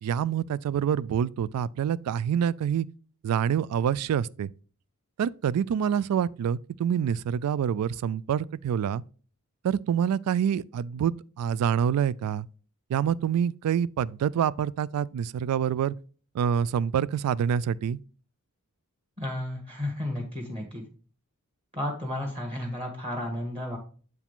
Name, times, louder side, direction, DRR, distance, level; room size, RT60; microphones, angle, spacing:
voice 1, 0.0-2.9 3.2-4.5 5.2-9.0 9.6-12.5 12.9-15.9 16.3-18.0, right 8 dB, 85° right, 0.3 m, -26 dB
voice 2, 19.2-20.8 21.7-23.8, left 1 dB, 25° right, 1.4 m, -33 dB
8.0 x 4.8 x 3.6 m
head